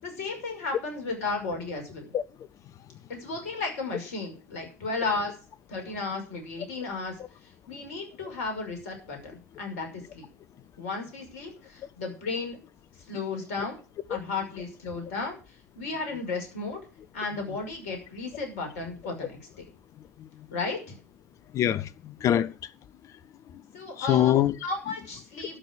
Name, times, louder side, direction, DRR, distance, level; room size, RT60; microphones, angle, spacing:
voice 1, 0.0-2.1 3.1-5.3 5.7-7.1 7.7-10.3 10.8-12.6 13.1-13.8 14.1-15.4 15.7-16.8 17.1-19.7 20.5-21.0 23.7-24.3 24.6-25.6, left 3 dB, 60° left, 5.9 m, -34 dB
voice 2, 21.5-22.7 23.5-23.6 24.0-24.6, left 11 dB, 35° left, 0.9 m, -25 dB
12.5 x 6.5 x 8.7 m
figure-of-eight pair, 75°, 9 cm